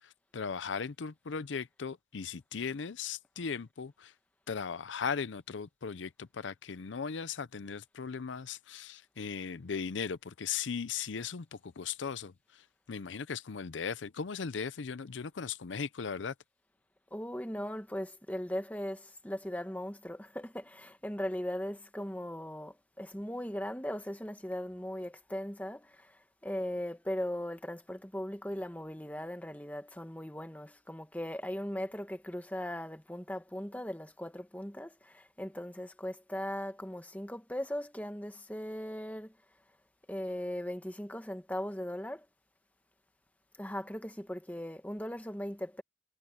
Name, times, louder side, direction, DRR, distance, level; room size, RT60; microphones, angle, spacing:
voice 1, 0.0-4.1 4.5-16.3, left 6 dB, 80° left, 0.6 m, -38 dB
voice 2, 17.1-39.3 40.1-42.3 43.6-45.8, equal, 10° left, 1.3 m, -38 dB
head